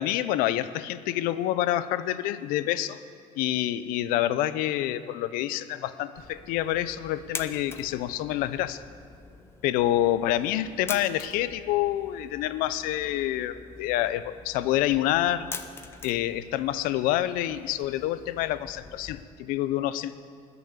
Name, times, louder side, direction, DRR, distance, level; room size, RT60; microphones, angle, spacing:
voice 1, 0.0-3.0 3.4-8.8 9.6-15.5 16.0-20.2, left 13 dB, 85° left, 14 dB, 0.6 m, -27 dB
sound 1, 6.2-19.2, left 4 dB, 15° left, 0.6 m, -45 dB
20.5 x 7.1 x 8.2 m, 2.3 s
cardioid pair, 170°, 14 cm